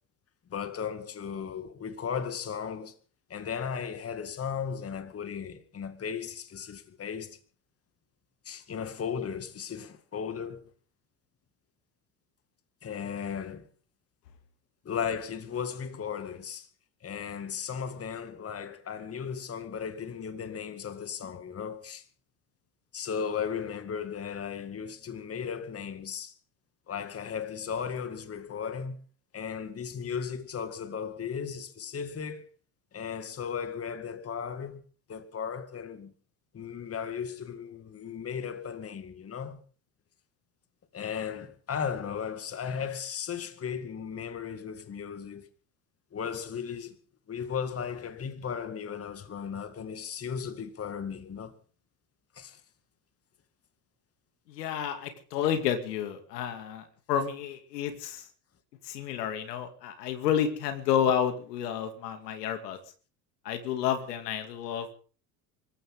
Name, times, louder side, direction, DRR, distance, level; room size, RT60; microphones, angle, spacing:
voice 1, 0.5-2.9 3.3-7.4 8.4-10.6 12.8-13.6 14.8-16.7 17.0-22.0 22.9-26.3 26.9-29.0 29.3-32.4 32.9-34.8 35.1-36.1 36.5-39.6 40.9-45.5 46.1-46.9 47.3-51.5 52.3-52.6, left 7 dB, 30° left, 2.2 m, -36 dB
voice 2, 54.5-58.2 58.9-62.8 63.4-64.9, left 9 dB, 75° left, 2.6 m, -30 dB
25.0 x 14.5 x 3.8 m
hypercardioid pair, 80°, 48 cm